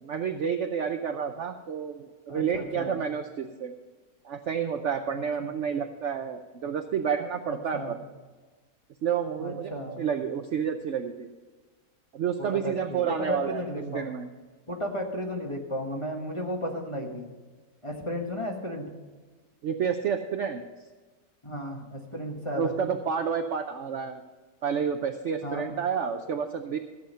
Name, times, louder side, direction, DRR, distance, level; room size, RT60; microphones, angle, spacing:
voice 1, 0.0-3.7 4.2-8.0 9.0-9.7 10.0-11.3 12.1-14.3 19.6-20.6 22.5-24.2 24.6-26.8, right 7 dB, 60° right, 7 dB, 0.8 m, -30 dB
voice 2, 2.3-3.0 5.1-5.5 7.5-7.9 9.4-10.1 12.6-14.2 14.7-17.3 17.8-18.9 21.4-22.8 25.4-25.7, equal, 20° left, 1 dB, 1.4 m, -34 dB
14.0 x 8.0 x 5.6 m, 1.3 s
omnidirectional pair, 1.8 m